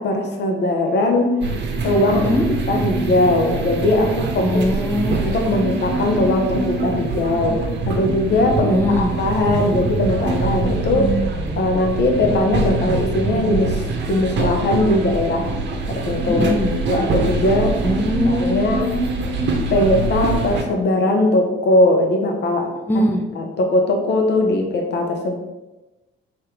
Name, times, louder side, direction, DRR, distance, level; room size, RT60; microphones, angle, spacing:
voice 1, 0.0-1.3 1.8-2.3 2.7-4.6 5.2-11.1 11.6-15.5 15.9-16.6 16.9-17.8 18.2-18.9 19.7-23.1 23.3-25.4, left 2 dB, 60° left, 3 dB, 0.9 m, -20 dB
sound 1, 1.4-20.6, right 3 dB, 65° right, 0.8 m, -24 dB
voice 2, 2.1-2.5 4.4-5.5 8.6-9.1 16.3-16.7 17.8-18.5 22.9-23.2, left 1 dB, 10° left, 2 dB, 0.6 m, -21 dB
3.7 x 2.9 x 4.8 m, 1.0 s
cardioid pair, 90°, 20 cm